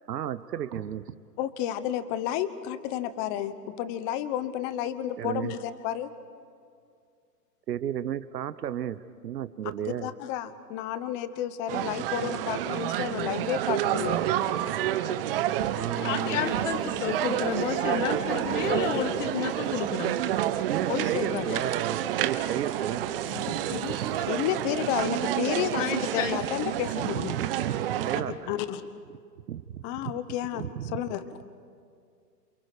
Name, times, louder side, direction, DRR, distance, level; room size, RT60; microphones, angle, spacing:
voice 1, 0.1-1.0 5.2-5.5 7.7-9.0 9.2-10.1 15.1-15.2 15.8-16.5 20.7-23.0 23.9-24.3 26.9-28.6 29.5-30.1 30.5-31.4, right 10 dB, 75° right, 13 dB, 1.1 m, -33 dB
voice 2, 1.4-6.1 10.0-14.2 20.9-21.6 24.2-27.3 28.5-28.8 29.8-30.7 30.9-31.2, left 11 dB, 25° left, 13 dB, 1.0 m, -31 dB
sound 1, 11.7-28.2, right 12 dB, 35° right, 1.0 m, -29 dB
voice 3, 16.0-20.6 23.3-24.3 25.8-26.4, left 7 dB, 50° left, 6 dB, 2.5 m, -31 dB
29.0 x 27.5 x 5.0 m, 2.3 s
hypercardioid pair, 145°, 48 cm